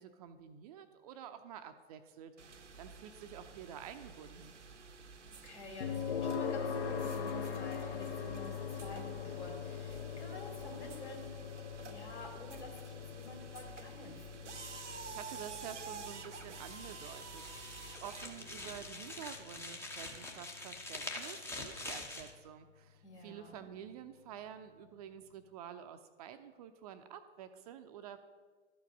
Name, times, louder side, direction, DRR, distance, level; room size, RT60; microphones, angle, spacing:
voice 1, 0.0-4.6 14.7-28.2, right 9 dB, 35° right, 9 dB, 0.6 m, -49 dB
sound 1, 2.4-18.9, right 5 dB, 80° right, 0.8 m, -50 dB
voice 2, 5.3-11.3 11.8-14.7 23.0-23.6, left 1 dB, 75° left, 0 dB, 2.9 m, -50 dB
sound 2, 5.8-20.7, left 7 dB, 55° left, 0.9 m, -42 dB
sound 3, 16.4-22.3, left 2 dB, 5° left, 0.7 m, -45 dB
12.5 x 4.8 x 5.3 m, 1.4 s
figure-of-eight pair, 105°, 35 cm